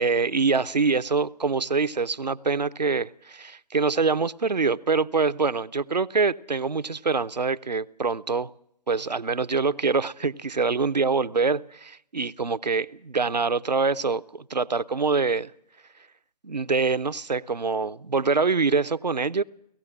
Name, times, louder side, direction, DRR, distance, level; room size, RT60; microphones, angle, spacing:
voice 1, 0.0-8.5 8.9-15.5 16.4-19.4, right 4 dB, 85° right, 0.7 m, -25 dB
18.0 x 15.0 x 10.0 m
figure-of-eight pair, 135°, 21 cm